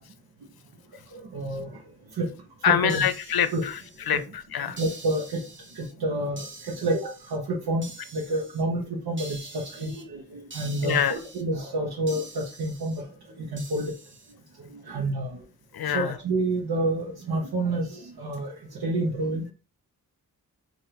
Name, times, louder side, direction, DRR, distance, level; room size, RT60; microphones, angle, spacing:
voice 1, 1.1-1.8 2.1-2.3 2.6-3.0 3.5-3.6 4.1-4.2 4.6-5.4 5.7-13.0 13.4-13.9 14.6-15.4 15.8-19.5, right 2 dB, 90° right, -2 dB, 0.9 m, -29 dB
voice 2, 2.6-3.8 4.1-4.8 10.8-11.2 15.7-16.2, left 9 dB, 80° left, 12 dB, 0.5 m, -25 dB
sound 1, 2.9-4.2 4.8-5.9 6.4-7.4 7.8-8.6 9.2-10.0 10.5-11.4 12.1-13.0 13.6-14.3, right 2 dB, 30° right, 0.8 m, -45 dB
4.9 x 2.5 x 2.9 m, 0.34 s
wide cardioid pair, 110°, 36 cm